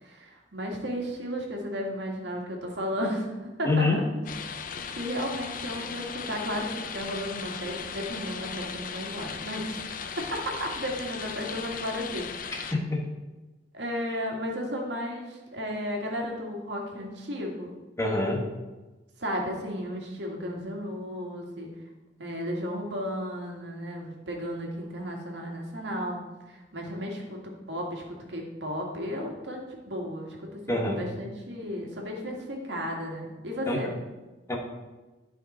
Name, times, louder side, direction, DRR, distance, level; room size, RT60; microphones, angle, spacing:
voice 1, 0.0-4.2 5.0-12.8 13.7-17.7 19.2-21.7 22.2-26.2 26.5-28.0 28.3-29.6 29.9-33.9, equal, 70° right, 0 dB, 1.8 m, -34 dB
voice 2, 3.6-4.0 12.7-13.0 18.0-18.4 30.7-31.0 33.7-33.8 34.5-34.6, left 2 dB, 15° left, 0 dB, 1.3 m, -25 dB
sound 1, 4.3-12.7, left 6 dB, 50° left, 0.5 m, -37 dB
11.5 x 5.2 x 4.3 m, 1.1 s
head